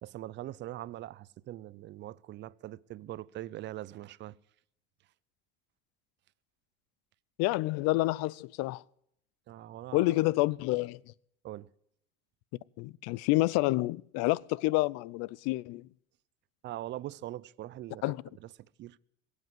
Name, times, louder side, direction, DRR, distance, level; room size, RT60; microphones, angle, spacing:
voice 1, 0.0-4.4 9.5-10.2 11.4-11.7 16.6-18.1 18.4-18.5 18.8-19.0, right 14 dB, 40° right, 0.5 m, -42 dB
voice 2, 7.4-8.8 9.9-11.0 12.8-15.9 18.0-18.2, left 20 dB, 60° left, 0.5 m, -28 dB
21.5 x 8.2 x 7.8 m
supercardioid pair, 120°, 29 cm